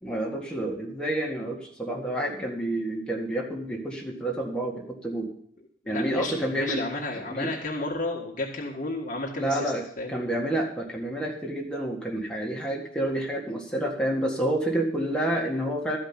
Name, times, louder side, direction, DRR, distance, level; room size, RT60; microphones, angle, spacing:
voice 1, 0.0-5.3 5.9-6.8 7.1-7.5 9.4-16.0, right 1 dB, 5° left, -1 dB, 1.8 m, -29 dB
voice 2, 5.8-9.6 10.0-10.2, left 2 dB, 40° left, -2 dB, 1.6 m, -32 dB
13.0 x 5.2 x 8.7 m, 0.66 s
head